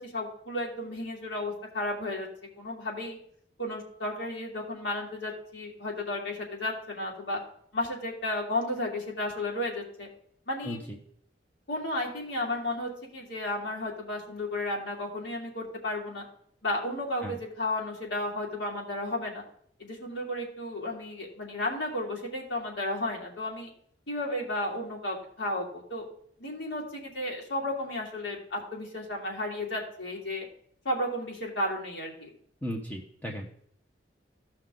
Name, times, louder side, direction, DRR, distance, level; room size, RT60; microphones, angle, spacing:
voice 1, 0.0-2.3 2.6-3.2 3.6-7.4 7.7-10.1 10.5-10.8 11.7-16.2 16.6-19.4 19.8-23.7 24.1-26.0 26.4-30.5 30.8-32.3, left 1 dB, 75° left, -2 dB, 2.7 m, -33 dB
voice 2, 10.6-11.0 17.2-17.4 32.6-33.5, equal, 10° left, -1 dB, 0.9 m, -36 dB
15.5 x 5.7 x 3.8 m, 0.65 s
head